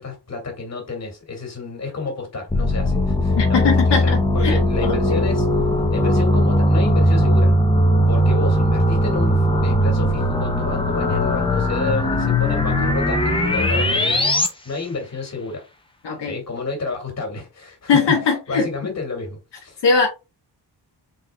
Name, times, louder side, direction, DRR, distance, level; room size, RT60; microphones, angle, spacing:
voice 1, 0.0-5.5 5.9-7.5 8.1-15.6 16.2-18.1 18.5-19.8, left 4 dB, 35° left, 1.8 m, -30 dB
sound 1, 2.5-14.5, left 1 dB, 10° left, 0.6 m, -19 dB
voice 2, 3.4-5.2 16.0-16.4 17.9-18.7 19.8-20.1, left 5 dB, 70° left, 1.0 m, -20 dB
4.3 x 3.9 x 2.2 m
wide cardioid pair, 165°, 43 cm